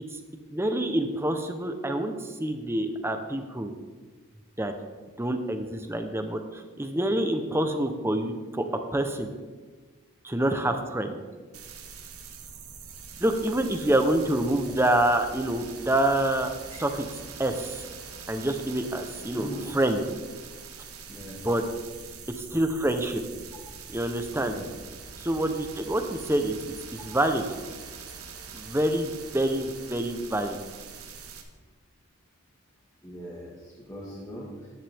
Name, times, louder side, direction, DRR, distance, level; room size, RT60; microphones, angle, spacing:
voice 1, 0.5-3.7 4.6-4.7 5.2-8.7 8.9-9.3 10.2-11.2 13.2-16.5 16.8-17.0 17.4-17.8 18.3-20.0 21.4-21.6 22.4-23.2 23.9-24.6 25.2-26.6 27.0-27.5 28.5-30.6, right 1 dB, 10° right, 6 dB, 0.8 m, -27 dB
sound 1, 11.5-31.4, right 5 dB, 90° right, 1.4 m, -44 dB
voice 2, 19.3-19.7 21.1-21.4 24.4-24.7 25.3-25.4 33.0-34.7, equal, 15° left, -6 dB, 1.6 m, -40 dB
14.5 x 11.0 x 3.5 m, 1.4 s
head